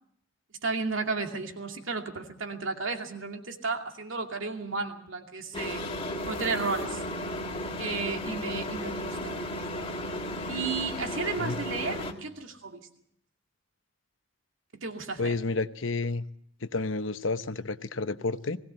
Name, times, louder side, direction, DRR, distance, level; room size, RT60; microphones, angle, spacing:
voice 1, 0.6-5.8 6.3-7.0 7.8-9.9 10.5-12.9 14.7-15.4, right 4 dB, 80° right, 4 dB, 2.5 m, -33 dB
sound 1, 5.5-12.1, left 1 dB, 30° left, 1.8 m, -34 dB
voice 2, 15.2-16.2 16.7-18.6, left 3 dB, 75° left, 12 dB, 0.9 m, -30 dB
20.5 x 17.0 x 7.9 m, 0.69 s
head